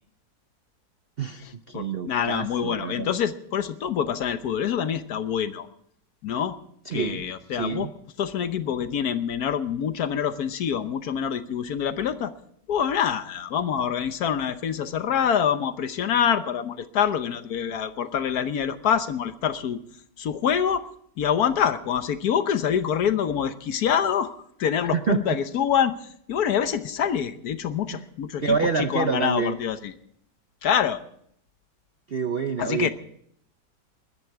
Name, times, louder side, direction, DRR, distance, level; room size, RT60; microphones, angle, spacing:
voice 1, 1.2-3.1 6.9-7.2 7.5-7.9 24.9-25.4 27.9-28.0 28.4-29.6 32.1-32.9, right 5 dB, 55° right, 8 dB, 0.6 m, -27 dB
voice 2, 1.7-5.7 6.2-6.5 6.9-7.9 8.2-12.3 12.7-19.8 20.2-20.9 21.2-24.3 24.6-28.6 28.9-29.9 30.6-31.0 32.6-32.9, left 8 dB, 65° left, 11 dB, 1.3 m, -25 dB
20.5 x 14.0 x 4.7 m, 0.68 s
omnidirectional pair, 1.9 m